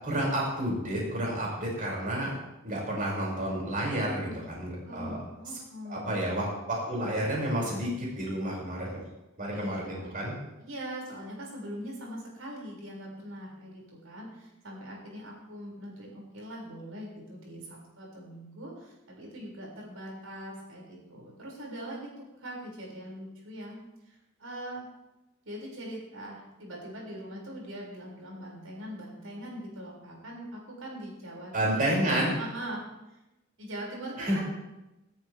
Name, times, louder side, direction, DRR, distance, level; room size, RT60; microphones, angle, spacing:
voice 1, 0.0-2.3 2.6-5.2 5.9-9.0 9.4-10.4 31.5-32.3 34.2-34.4, right 1 dB, 40° right, -3 dB, 7.0 m, -30 dB
voice 2, 3.8-4.4 4.8-6.1 9.5-10.1 10.6-22.1 22.4-23.8 24.1-24.8 25.4-32.8 33.6-34.4, right 1 dB, 80° right, -3 dB, 6.7 m, -42 dB
25.5 x 13.5 x 3.7 m, 0.96 s
head